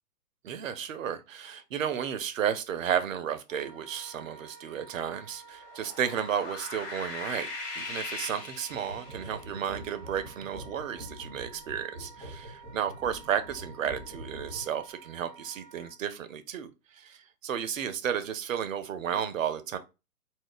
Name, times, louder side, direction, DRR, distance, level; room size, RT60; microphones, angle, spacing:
voice 1, 0.4-7.5 7.8-19.8, right 8 dB, 55° right, 0.5 m, -33 dB
Wind instrument woodwind instrument, 3.5-15.9, right 6 dB, 30° left, 0.5 m, -52 dB
sound 1, 5.6-9.4, left 3 dB, 45° left, 1.0 m, -39 dB
sound 2, 8.7-14.9, equal, 10° left, 0.9 m, -45 dB
2.4 x 2.0 x 3.6 m
figure-of-eight pair, 125°, 47 cm